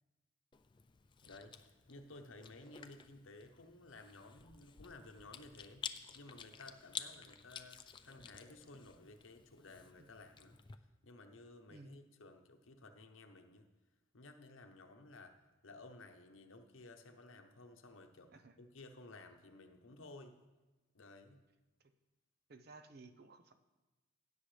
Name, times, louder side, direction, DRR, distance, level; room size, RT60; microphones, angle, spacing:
Chewing mastication, 0.5-10.8, left 7 dB, 25° left, 0.4 m, -52 dB
voice 1, 1.2-5.9 6.1-10.6 11.0-13.7 14.1-20.4 20.9-21.4, left 2 dB, 75° left, 5 dB, 0.9 m, -56 dB
voice 2, 22.5-23.5, right 3 dB, 50° right, 8 dB, 0.7 m, -56 dB
16.0 x 7.1 x 3.3 m, 1.1 s
head